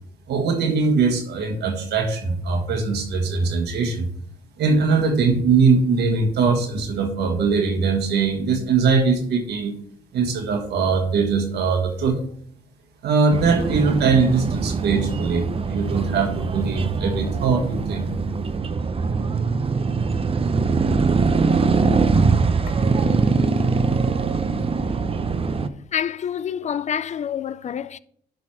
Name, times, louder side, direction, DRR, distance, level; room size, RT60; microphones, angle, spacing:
voice 1, 0.3-4.1 4.6-9.7 10.1-12.2 13.0-18.1, right 4 dB, 80° right, 1.6 m, -21 dB
sound 1, 13.3-25.7, right 4 dB, 35° right, 0.6 m, -22 dB
voice 2, 25.9-28.0, left 8 dB, 45° left, 0.4 m, -27 dB
11.5 x 4.1 x 4.4 m
cardioid pair, 80°, 17 cm